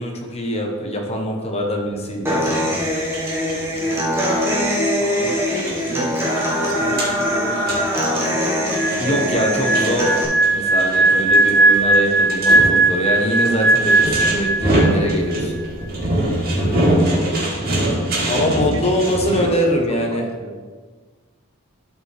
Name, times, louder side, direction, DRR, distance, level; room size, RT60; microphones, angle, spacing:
voice 1, 0.0-2.5 9.0-10.2 10.5-15.5 18.3-20.2, equal, 30° left, 1 dB, 1.1 m, -23 dB
Human voice / Acoustic guitar, 2.2-10.2, equal, 10° right, 1.5 m, -22 dB
sound 1, 2.3-19.5, right 1 dB, 45° right, 2.5 m, -25 dB
voice 2, 5.0-5.4 5.8-7.9 9.0-10.1 17.7-19.6 20.1-20.6, right 1 dB, 65° right, 5 dB, 0.9 m, -33 dB
sound 2, 8.7-15.1 15.4-15.6, right 2 dB, 5° left, 0.4 m, -17 dB
12.5 x 5.2 x 3.4 m, 1.5 s
head